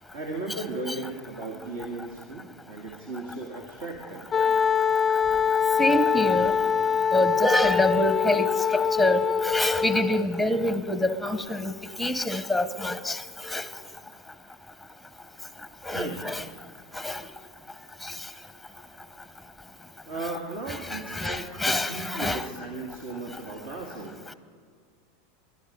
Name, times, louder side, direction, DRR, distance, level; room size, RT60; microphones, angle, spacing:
voice 1, 0.1-4.3 15.9-16.2 20.1-24.4, right 2 dB, 65° right, 2.0 m, -36 dB
Wind instrument woodwind instrument, 4.3-10.3, left 7 dB, 20° left, 0.4 m, -24 dB
voice 2, 5.8-6.6 7.1-11.7 12.0-13.6 15.8-16.4 16.9-17.2 18.0-18.1 20.7-22.5, left 1 dB, ahead, 0.9 m, -26 dB
22.5 x 11.5 x 5.3 m
hypercardioid pair, 90°, 0 cm